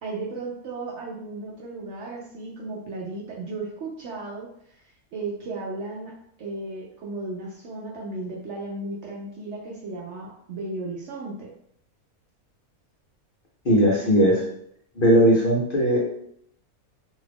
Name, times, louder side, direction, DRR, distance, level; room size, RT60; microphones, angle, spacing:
voice 1, 0.0-4.5 5.1-6.1 6.4-11.5, right 2 dB, 65° right, -2 dB, 0.8 m, -35 dB
voice 2, 13.6-14.5 15.0-16.0, equal, 45° left, -5 dB, 0.8 m, -18 dB
2.7 x 2.4 x 3.4 m, 0.69 s
omnidirectional pair, 1.5 m